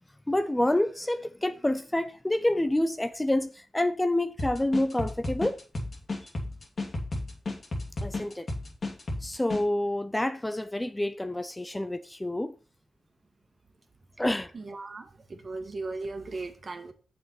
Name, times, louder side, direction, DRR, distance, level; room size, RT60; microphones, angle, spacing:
voice 1, 0.3-5.6 8.0-8.5 9.2-12.5 14.2-14.5, left 1 dB, 15° left, 0.6 m, -28 dB
sound 1, 4.4-9.6, left 2 dB, 45° left, 2.6 m, -33 dB
voice 2, 14.5-16.9, right 3 dB, 45° right, 1.8 m, -37 dB
7.8 x 5.7 x 6.0 m
cardioid pair, 80°, 0 cm